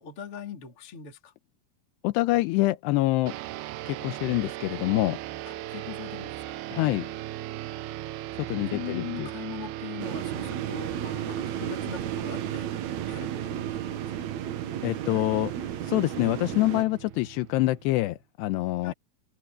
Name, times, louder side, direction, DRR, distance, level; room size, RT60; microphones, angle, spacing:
voice 1, 0.0-1.3 5.5-7.2 8.7-12.7 13.1-13.6 18.8-18.9, left 8 dB, 35° left, 3.7 m, -41 dB
voice 2, 2.0-3.3 3.9-5.2 6.7-7.0 8.4-9.3 14.8-15.5 15.8-18.9, left 18 dB, 90° left, 3.0 m, -26 dB
sound 1, 3.3-18.1, right 14 dB, 80° right, 2.7 m, -37 dB
sound 2, 10.0-16.8, right 9 dB, 65° right, 1.9 m, -34 dB
omnidirectional pair, 4.8 m